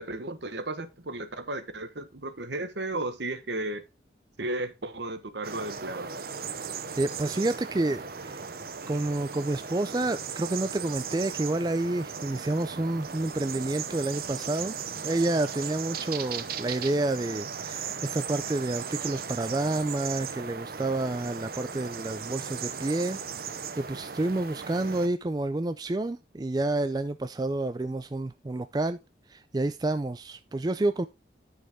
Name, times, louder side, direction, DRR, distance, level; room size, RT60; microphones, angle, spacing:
voice 1, 0.0-3.8 4.4-6.1, right 2 dB, 70° right, 1.2 m, -34 dB
sound 1, 5.4-25.1, right 6 dB, 55° right, 0.8 m, -37 dB
voice 2, 7.0-8.4 8.9-23.2 23.8-29.0 29.3-31.1, right 2 dB, 20° right, 0.4 m, -29 dB
9.3 x 6.5 x 3.5 m
head